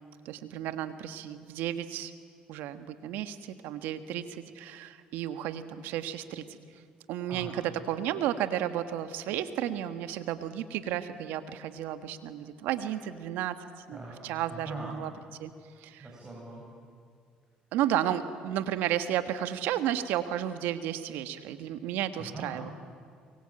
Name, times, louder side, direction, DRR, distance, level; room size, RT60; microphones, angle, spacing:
voice 1, 0.2-2.1 2.5-6.4 7.1-13.6 13.9-15.1 15.4-15.5 15.8-16.1 17.7-22.7, right 11 dB, 75° right, 10 dB, 1.5 m, -33 dB
voice 2, 7.3-7.6 13.9-14.2 14.5-14.9 16.0-16.6 22.2-22.7, right 2 dB, 20° right, -3 dB, 7.6 m, -41 dB
24.0 x 22.0 x 8.9 m, 2.2 s
supercardioid pair, 70°, 3 cm